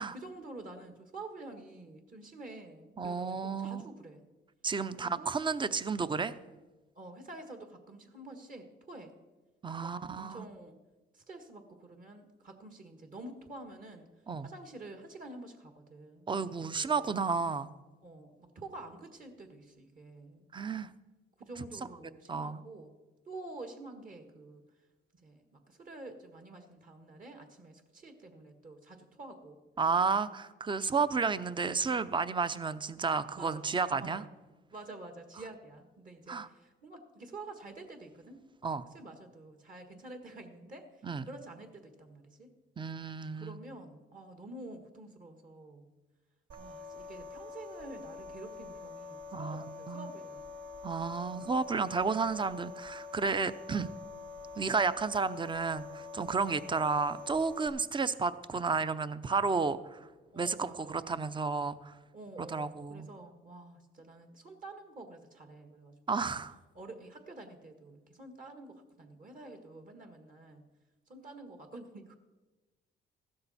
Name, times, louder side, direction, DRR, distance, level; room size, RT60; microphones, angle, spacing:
voice 1, 0.0-4.2 5.0-5.3 6.9-9.1 9.8-10.7 11.1-14.1 14.4-17.1 18.0-20.5 21.4-22.9 23.3-24.6 25.2-29.6 33.3-34.3 34.7-38.4 38.7-42.5 43.2-45.9 46.6-50.4 56.4-56.9 60.3-61.2 62.1-66.3 66.7-70.7 71.1-72.2, right 2 dB, 45° right, 6 dB, 1.6 m, -48 dB
voice 2, 3.0-3.8 4.6-6.3 9.6-10.4 14.3-14.5 16.3-17.7 20.5-20.9 22.3-22.6 29.8-34.2 36.3-36.5 38.6-38.9 41.0-41.2 42.8-43.6 49.3-50.1 50.8-53.9 54.6-60.0 60.4-61.9 62.4-63.1 66.1-66.5, right 4 dB, 25° right, 14 dB, 0.6 m, -32 dB
sound 1, 46.5-57.7, left 4 dB, 85° right, 2.9 m, -46 dB
15.0 x 12.5 x 4.2 m, 1.2 s
cardioid pair, 90°, 20 cm